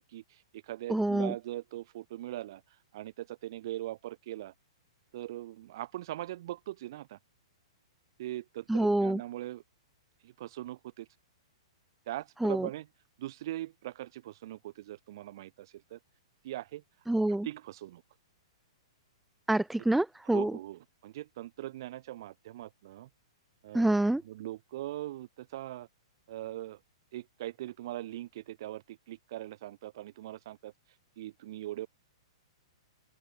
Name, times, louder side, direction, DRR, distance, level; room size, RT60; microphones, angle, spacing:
voice 1, 0.1-2.6 2.9-4.5 5.1-7.2 8.2-9.6 10.2-11.1 12.1-12.9 13.2-16.0 16.4-16.8 17.4-18.0 20.3-23.1 23.6-25.9 26.3-26.8 27.1-30.7 31.2-31.9, right 14 dB, 50° right, 2.3 m, -41 dB
voice 2, 0.9-1.3 8.7-9.2 12.4-12.7 17.1-17.5 19.5-20.5 23.7-24.2, right 1 dB, 5° right, 0.6 m, -27 dB
open air
figure-of-eight pair, 110°, 3 cm